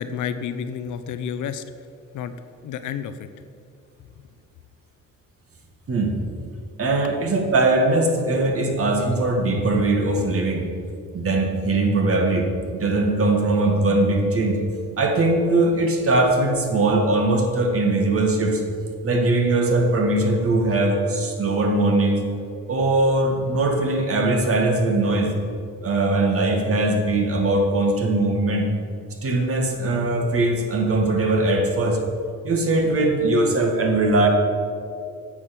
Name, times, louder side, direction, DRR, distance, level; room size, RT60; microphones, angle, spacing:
voice 1, 0.0-1.6 2.1-2.3 2.6-3.3, left 8 dB, 75° left, 11 dB, 0.7 m, -30 dB
voice 2, 6.8-10.6 11.1-14.6 15.0-18.6 19.0-22.2 22.7-25.3 25.8-28.7 29.2-32.0 32.4-34.3, right 2 dB, 50° right, 3 dB, 1.8 m, -20 dB
9.0 x 6.3 x 6.8 m, 2.4 s
cardioid pair, 90°, 30 cm